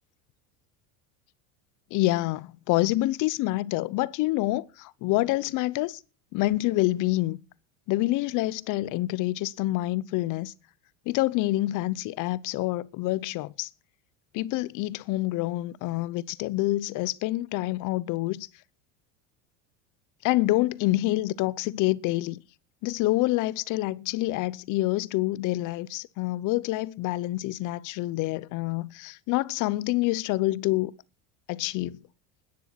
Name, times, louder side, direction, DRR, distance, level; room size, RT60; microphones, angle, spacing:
voice 1, 1.9-6.0 6.3-7.4 7.9-10.5 11.1-13.7 14.3-18.5 20.2-22.4 22.8-30.9 31.5-32.0, left 18 dB, 55° left, 0.7 m, -27 dB
13.0 x 9.9 x 5.8 m
supercardioid pair, 130°, 38 cm